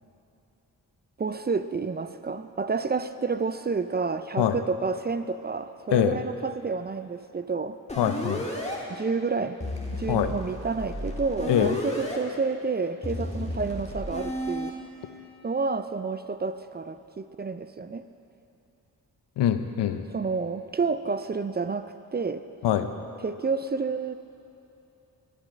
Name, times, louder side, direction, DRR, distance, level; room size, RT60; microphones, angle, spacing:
voice 1, 1.2-7.8 8.9-9.6 9.9-14.7 15.4-18.0 20.1-22.4 23.2-24.1, right 4 dB, 25° right, 11 dB, 0.3 m, -29 dB
sound 1, 7.9-8.8 9.6-12.2 13.0-14.7, left 1 dB, 15° left, 1.7 m, -33 dB
voice 2, 8.0-8.4 10.1-10.3 11.5-11.8 19.4-20.1 22.6-22.9, left 10 dB, 85° left, 9 dB, 0.6 m, -24 dB
12.0 x 7.3 x 5.1 m, 2.9 s
cardioid pair, 45°, 41 cm